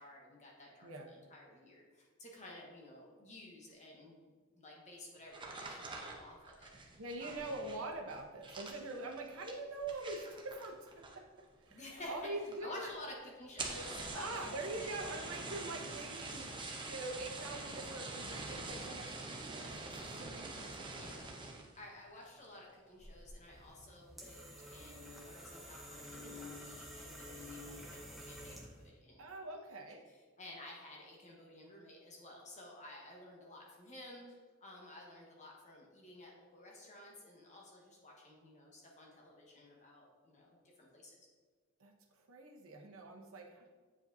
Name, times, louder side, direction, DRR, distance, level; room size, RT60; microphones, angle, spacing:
voice 1, 0.0-7.5 11.7-12.2 12.6-15.1 20.9-21.3 21.8-29.5 30.1-41.2, left 1 dB, 35° left, -2 dB, 1.2 m, -53 dB
sound 1, 5.3-11.4 11.7-12.2 12.5-12.6 12.9-13.0 13.4-21.8 22.2-22.6 23.0-23.4, right 3 dB, 25° right, 0.7 m, -45 dB
voice 2, 7.0-12.9 14.1-21.0 29.2-30.0 41.8-41.9 42.2-43.7, right 2 dB, 80° right, 1 dB, 0.8 m, -44 dB
sound 2, 23.5-28.9, left 1 dB, ahead, 0.9 m, -50 dB
8.2 x 5.0 x 2.7 m, 1.5 s
head